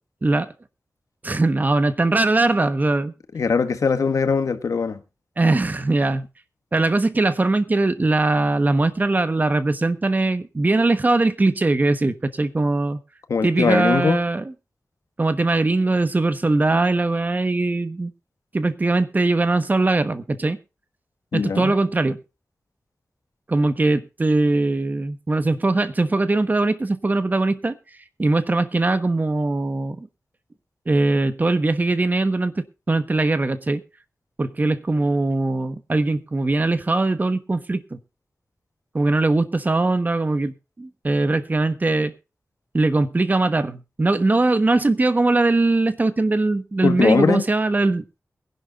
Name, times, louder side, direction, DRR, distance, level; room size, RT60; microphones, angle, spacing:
voice 1, 0.2-0.5 1.2-3.1 5.4-6.2 6.7-13.0 13.4-14.5 15.2-18.1 18.5-20.6 21.3-22.2 23.5-27.7 28.2-30.1 30.9-32.5 32.9-33.8 34.4-38.0 38.9-42.1 42.7-48.0, right 2 dB, 30° right, 1.1 m, -21 dB
voice 2, 3.3-5.0 13.3-14.2 21.3-21.7 46.8-47.4, left 5 dB, 90° left, 1.5 m, -20 dB
22.5 x 11.0 x 2.4 m
wide cardioid pair, 120°, 5 cm